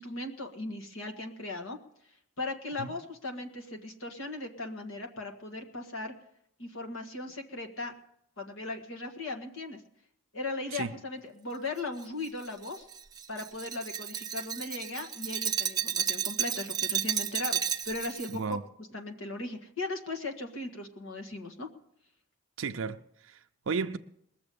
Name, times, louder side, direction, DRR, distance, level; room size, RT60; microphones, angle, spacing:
voice 1, 0.0-1.8 2.4-6.1 6.6-7.9 8.4-9.8 10.3-12.9 13.3-18.6 18.9-21.7, left 2 dB, 70° left, 1.6 m, -38 dB
Glass, 12.0-18.3, right 9 dB, 20° right, 0.5 m, -32 dB
voice 2, 22.6-24.0, right 5 dB, 65° right, 0.5 m, -34 dB
21.0 x 7.2 x 6.9 m
head